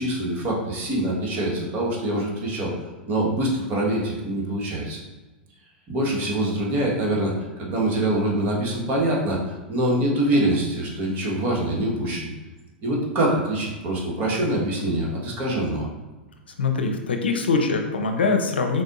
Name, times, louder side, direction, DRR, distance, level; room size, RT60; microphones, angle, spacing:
voice 1, 0.0-2.7 3.1-5.0 5.9-12.3 12.8-15.9, right 1 dB, 40° right, -3 dB, 1.3 m, -24 dB
voice 2, 16.6-18.8, left 4 dB, 85° left, 4 dB, 0.6 m, -23 dB
4.1 x 3.8 x 2.5 m, 1.2 s
hypercardioid pair, 100°, 6 cm